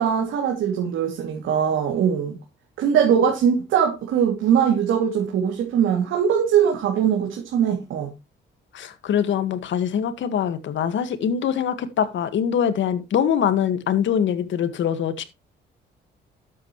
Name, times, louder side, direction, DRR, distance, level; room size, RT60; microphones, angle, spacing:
voice 1, 0.0-2.4 2.8-8.1, right 8 dB, 80° right, 2.8 m, -21 dB
voice 2, 8.7-15.2, left 8 dB, 70° left, 1.8 m, -23 dB
12.5 x 8.6 x 3.2 m
cardioid pair, 90°, 20 cm